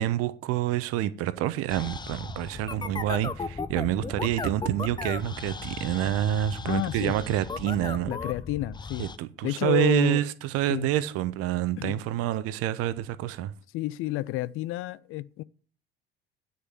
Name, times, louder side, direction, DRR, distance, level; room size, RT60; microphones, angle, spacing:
voice 1, 0.0-8.1 9.0-13.5, right 12 dB, 50° right, 1.0 m, -27 dB
sound 1, 1.7-9.2, left 4 dB, 15° left, 0.8 m, -36 dB
voice 2, 6.6-7.1 8.1-9.0 9.4-10.2 10.7-10.9 11.8-12.0 13.7-15.4, left 16 dB, 45° left, 0.6 m, -30 dB
9.6 x 6.6 x 8.7 m
figure-of-eight pair, 60°, 30 cm